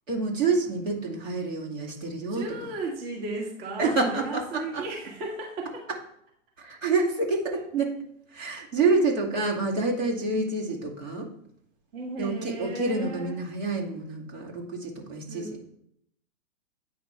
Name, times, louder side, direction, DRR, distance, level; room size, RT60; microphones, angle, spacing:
voice 1, 0.1-2.7 3.8-4.8 6.6-7.9 8.3-11.3 12.2-15.6, right 3 dB, 70° right, -1 dB, 2.4 m, -28 dB
voice 2, 2.3-5.8 10.7-10.8 11.9-13.4 15.3-15.7, right 2 dB, 45° right, 0 dB, 1.9 m, -35 dB
8.8 x 5.1 x 4.4 m, 0.72 s
figure-of-eight pair, 115°, 39 cm